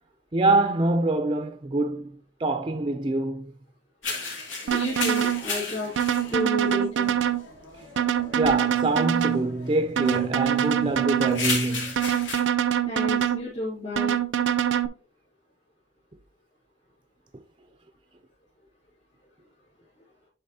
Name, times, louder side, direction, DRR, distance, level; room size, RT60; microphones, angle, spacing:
voice 1, 0.3-2.1 2.4-3.5 8.4-12.1, right 2 dB, 25° right, 0.4 m, -25 dB
sound 1, 4.0-12.4, left 3 dB, 90° left, 2.5 m, -35 dB
voice 2, 4.7-5.9 6.3-7.1 12.9-14.2, left 1 dB, 35° left, 3.7 m, -31 dB
sound 2, 4.7-5.4 6.0-7.4 8.0-9.4 10.0-11.4 12.0-13.4 14.0-14.9, right 10 dB, 85° right, 0.5 m, -24 dB
10.5 x 4.0 x 2.8 m
head